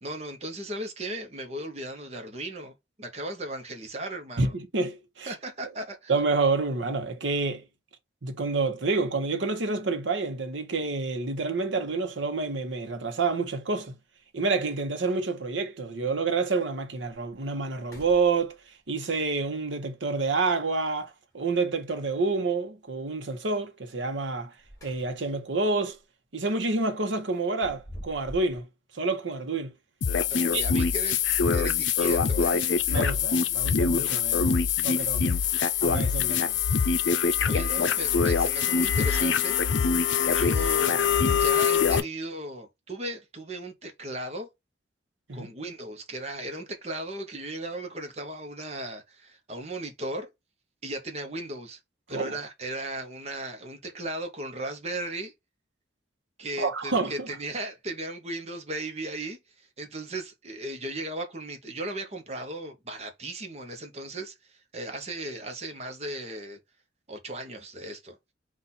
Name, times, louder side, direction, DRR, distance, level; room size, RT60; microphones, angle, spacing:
voice 1, 0.0-4.5 5.3-6.1 30.3-31.2 31.5-32.7 37.4-39.6 40.3-44.5 45.3-50.3 50.8-51.8 52.1-55.3 56.4-66.6 67.1-68.2, right 1 dB, 35° right, 0.9 m, -36 dB
voice 2, 4.4-5.3 6.1-7.7 8.2-14.0 14.3-18.6 18.9-24.5 24.8-26.0 26.3-28.7 28.9-29.7 30.5-30.6 32.9-35.3 35.8-36.6 45.3-45.5 52.1-52.4 56.6-57.3, right 3 dB, 90° right, 1.0 m, -28 dB
sound 1, 12.1-12.2 13.8-13.9 14.3-14.4 14.7-15.3 15.8-15.9 16.5-16.6 17.0-17.3 17.8-18.8 20.9-21.6 24.4-25.4 25.8-26.0 27.3-28.6, equal, 20° left, 2.2 m, -47 dB
sound 2, 30.0-42.0, left 6 dB, 85° left, 0.5 m, -24 dB
4.0 x 2.5 x 4.1 m
head